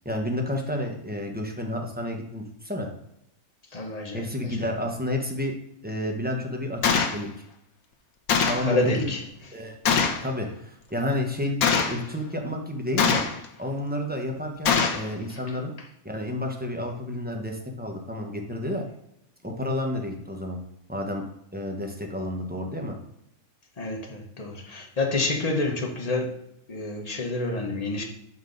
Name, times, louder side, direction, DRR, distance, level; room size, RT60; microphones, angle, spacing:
voice 1, 0.0-2.9 4.1-5.5 5.8-7.3 8.5-9.1 9.5-9.7 10.2-13.2 13.6-15.7 16.0-18.8 19.4-20.6 20.9-21.2 21.5-23.0, left 1 dB, 10° right, 1 dB, 0.9 m, -30 dB
voice 2, 3.7-4.6 8.6-9.2 15.3-15.5 23.8-26.4 26.7-28.0, left 2 dB, 30° left, 2 dB, 1.1 m, -28 dB
Gunshot gunfire, 6.8-7.2 8.3-8.7 9.9-10.2 11.6-12.0 13.0-13.5 14.7-15.1, left 6 dB, 85° left, 1.3 m, -22 dB
6.8 x 5.8 x 4.0 m, 0.77 s
omnidirectional pair, 1.5 m